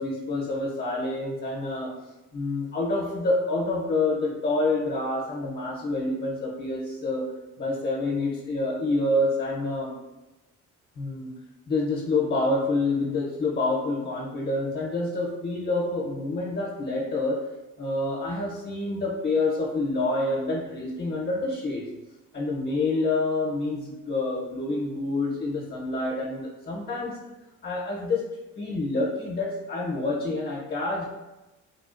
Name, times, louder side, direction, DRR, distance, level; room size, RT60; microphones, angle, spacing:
voice 1, 0.0-1.9 2.3-7.2 7.6-9.9 11.0-11.3 11.7-17.5 17.8-21.9 22.3-27.2 27.6-28.3 28.5-31.0, left 2 dB, 35° left, -4 dB, 0.6 m, -27 dB
3.1 x 2.3 x 2.4 m, 1.0 s
cardioid pair, 90°, 30 cm